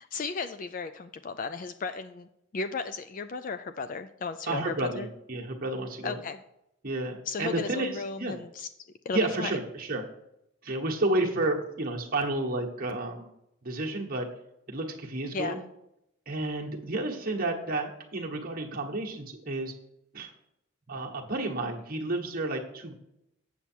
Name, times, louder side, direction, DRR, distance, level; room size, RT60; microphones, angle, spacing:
voice 1, 0.0-5.1 6.0-6.4 7.3-8.7 9.1-9.5 15.3-15.6, left 4 dB, 35° left, 10 dB, 0.3 m, -35 dB
voice 2, 4.5-6.2 6.8-7.9 8.2-8.3 9.1-10.0 10.6-13.3 13.6-14.3 14.7-15.6 16.3-19.7 20.1-20.3 20.9-22.9, right 2 dB, 40° right, -1 dB, 1.3 m, -31 dB
8.4 x 7.0 x 4.4 m, 0.82 s
head